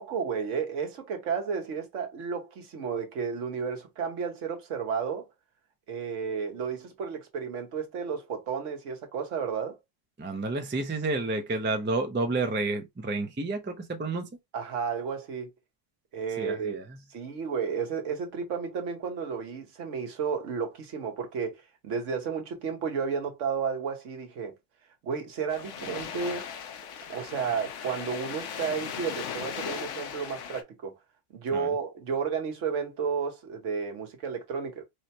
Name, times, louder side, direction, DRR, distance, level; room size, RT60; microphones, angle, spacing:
voice 1, 0.0-5.3 5.9-9.8 14.5-15.5 16.1-16.8 17.1-24.5 25.0-26.5 27.1-30.9 31.3-34.8, right 6 dB, 85° right, 1.3 m, -32 dB
voice 2, 10.2-14.3 16.4-16.8 31.5-31.7, right 3 dB, 20° right, 0.3 m, -30 dB
sound 1, 25.5-30.6, left 7 dB, 80° left, 1.0 m, -38 dB
4.8 x 2.1 x 2.8 m
omnidirectional pair, 1.2 m